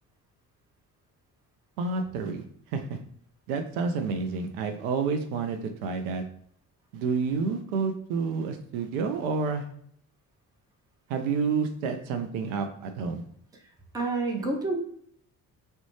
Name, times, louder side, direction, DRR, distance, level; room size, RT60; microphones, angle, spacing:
voice 1, 1.8-2.4 2.7-3.0 3.5-6.2 6.9-9.6 11.1-13.2, right 5 dB, 65° right, 6 dB, 0.5 m, -29 dB
voice 2, 13.9-14.8, right 3 dB, 10° right, 2 dB, 0.5 m, -28 dB
2.4 x 2.1 x 3.0 m, 0.63 s
figure-of-eight pair, 45°, 48 cm